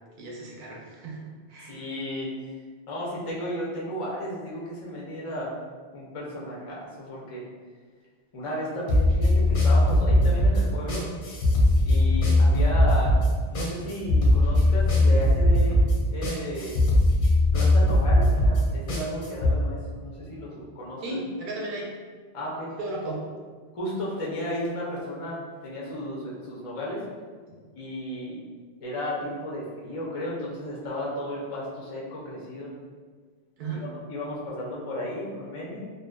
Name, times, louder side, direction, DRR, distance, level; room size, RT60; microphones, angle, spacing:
voice 1, 0.2-1.8 21.0-21.9 22.8-23.3 33.6-33.8, right 2 dB, 60° right, -2 dB, 0.6 m, -35 dB
voice 2, 1.6-2.3 2.9-5.5 5.9-7.4 8.3-11.1 11.8-13.2 13.5-16.8 17.5-21.0 22.3-22.7 23.7-27.0 27.7-28.4 28.8-32.7 33.7-33.8 34.1-35.8, left 1 dB, 60° left, -5 dB, 0.3 m, -34 dB
sound 1, 8.9-19.5, left 1 dB, 85° left, 0.8 m, -20 dB
2.6 x 2.0 x 2.2 m, 1.5 s
omnidirectional pair, 1.1 m